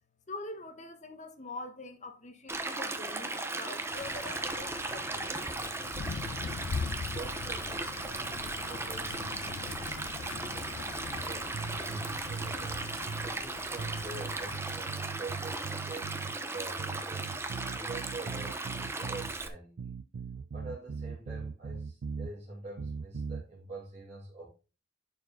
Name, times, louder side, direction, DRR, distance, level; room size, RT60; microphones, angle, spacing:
voice 1, 0.3-5.6, left 2 dB, 35° left, 1.3 m, -44 dB
Stream, 2.5-19.5, right 2 dB, 15° right, 0.9 m, -37 dB
sound 1, 3.9-14.8, left 5 dB, 80° left, 0.4 m, -42 dB
voice 2, 7.1-11.5 11.8-12.8 13.2-17.3 17.7-19.9 20.5-24.5, right 2 dB, 30° right, 2.9 m, -46 dB
sound 2, 11.5-13.3 13.8-16.4 16.8-19.3 19.8-22.3 22.8-23.4, right 5 dB, 70° right, 0.4 m, -40 dB
11.0 x 4.9 x 3.8 m
head